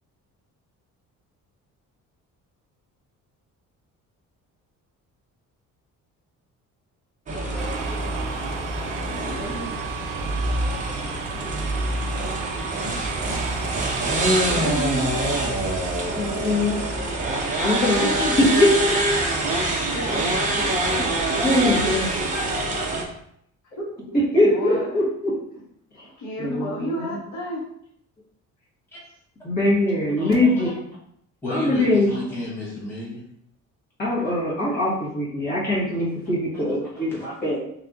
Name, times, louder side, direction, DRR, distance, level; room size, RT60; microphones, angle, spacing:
sound 1, 7.3-23.0, right 1 dB, 25° right, 0.5 m, -25 dB
sound 2, 7.6-14.6, right 6 dB, 90° right, 0.6 m, -35 dB
voice 1, 9.1-9.7 14.4-15.4 17.8-18.5 19.9-22.5 23.8-23.9 24.4-25.1 26.0-27.6, equal, 55° left, -3 dB, 0.9 m, -32 dB
voice 2, 16.1-16.8 17.6-18.7 21.4-22.1 24.1-25.3 26.4-27.2 29.4-30.7 31.5-32.1 34.0-37.6, left 1 dB, 30° left, -6 dB, 1.4 m, -22 dB
voice 3, 30.2-30.7 31.4-33.2 36.9-37.3, left 1 dB, 5° left, -8 dB, 1.0 m, -33 dB
3.3 x 2.8 x 3.6 m, 0.71 s
cardioid pair, 175°, 32 cm